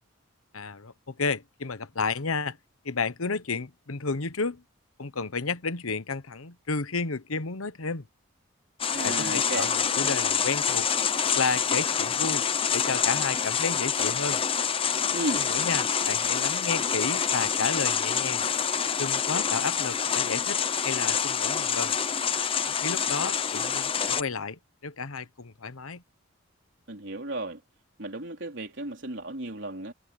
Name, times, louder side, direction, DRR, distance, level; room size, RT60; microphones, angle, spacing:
voice 1, 0.5-2.6 2.8-4.6 5.0-8.1 9.0-10.9 11.3-12.4 12.7-14.4 15.5-18.4 19.0-22.0 22.8-26.0, left 4 dB, 90° left, 1.1 m, -32 dB
sound 1, 8.8-24.2, left 7 dB, 25° left, 0.7 m, -27 dB
voice 2, 8.9-9.7 15.1-15.5 26.9-27.6 28.0-29.9, right 1 dB, 60° right, 3.8 m, -34 dB
head